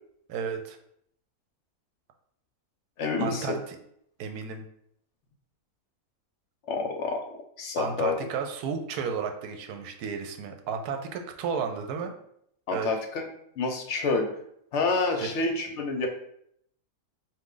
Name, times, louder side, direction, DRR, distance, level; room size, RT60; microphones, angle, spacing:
voice 1, 0.3-0.8 3.2-3.8 4.2-4.6 7.8-12.1 12.7-12.9 15.2-15.3, right 6 dB, 85° right, 5 dB, 1.1 m, -33 dB
voice 2, 3.0-3.6 6.7-7.2 7.6-8.2 12.7-13.2 13.6-14.3 14.7-16.1, left 3 dB, 60° left, 3 dB, 0.9 m, -28 dB
4.0 x 2.6 x 3.7 m, 0.71 s
omnidirectional pair, 1.6 m